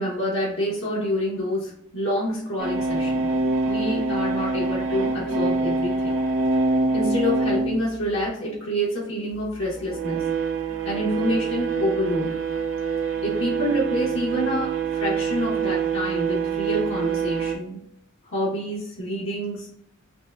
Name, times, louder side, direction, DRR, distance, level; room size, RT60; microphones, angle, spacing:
voice 1, 0.0-3.3 3.6-6.1 6.9-10.2 10.8-12.5 13.2-17.8 18.3-19.7, equal, 65° left, -5 dB, 1.3 m, -27 dB
sound 1, 2.6-7.8 9.6-17.6, right 4 dB, 60° right, 0.9 m, -25 dB
5.8 x 2.2 x 2.4 m, 0.71 s
head